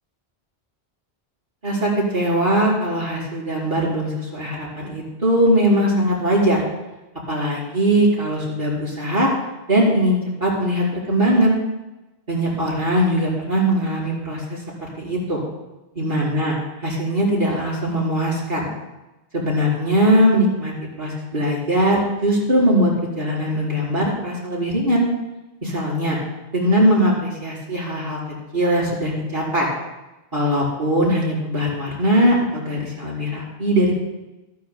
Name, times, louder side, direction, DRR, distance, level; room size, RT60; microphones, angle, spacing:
voice 1, 1.6-6.6 7.3-9.3 9.7-11.6 12.3-14.6 15.0-15.4 15.9-16.5 16.8-18.6 19.3-25.1 25.6-26.2 26.5-28.2 28.5-29.7 30.3-33.9, equal, 55° right, -6 dB, 4.9 m, -20 dB
28.0 x 9.7 x 2.3 m, 1.0 s
omnidirectional pair, 1.0 m